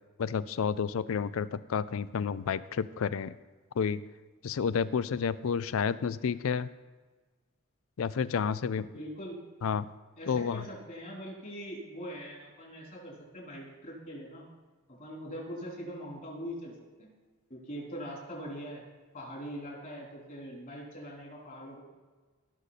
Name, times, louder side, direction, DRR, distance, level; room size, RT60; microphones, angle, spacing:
voice 1, 0.2-3.4 3.8-4.0 4.4-6.7 8.0-8.9 9.6-9.9 10.3-10.7, left 6 dB, 65° left, 16 dB, 0.4 m, -30 dB
voice 2, 8.9-9.4 10.2-14.5 14.9-17.1 17.5-18.8 19.1-21.8, equal, 40° left, -3 dB, 3.8 m, -42 dB
17.0 x 6.5 x 4.1 m, 1.4 s
head